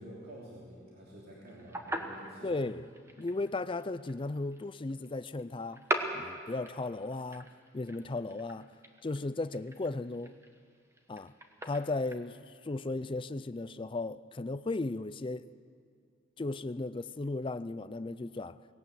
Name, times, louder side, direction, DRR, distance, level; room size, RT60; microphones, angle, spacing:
voice 1, 0.0-2.6 3.2-3.3, equal, 50° right, 3.2 m, -49 dB
sound 1, 1.5-12.2, right 1 dB, 15° right, 1.1 m, -41 dB
voice 2, 2.4-2.9 3.2-5.8 6.1-8.7 9.0-10.4 11.1-11.3 11.6-15.5 16.4-18.6, left 2 dB, 25° left, 0.4 m, -36 dB
19.0 x 18.0 x 7.8 m
head